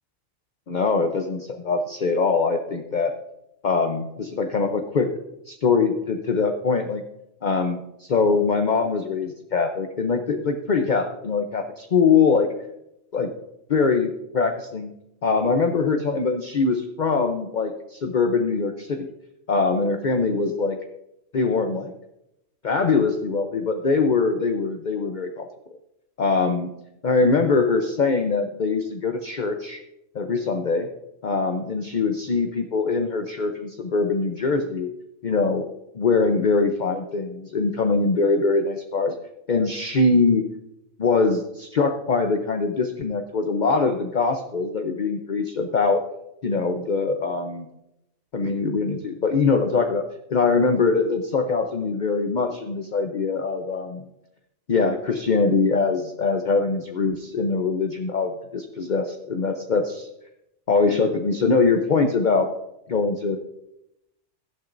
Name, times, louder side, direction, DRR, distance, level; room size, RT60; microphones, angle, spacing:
voice 1, 0.7-3.1 3.6-5.1 5.5-7.0 7.4-12.5 13.1-13.3 13.7-14.9 15.2-19.1 19.5-20.8 21.3-21.9 22.6-25.5 26.2-26.7 27.0-29.8 30.1-30.9 31.2-34.9 35.2-35.7 35.9-39.1 39.5-40.5 41.0-46.0 46.4-47.7 48.3-50.0 50.3-54.1 54.7-60.1 60.7-62.5 62.9-63.4, left 4 dB, 45° left, 5 dB, 0.8 m, -22 dB
16.0 x 12.0 x 2.6 m, 0.85 s
omnidirectional pair, 1.3 m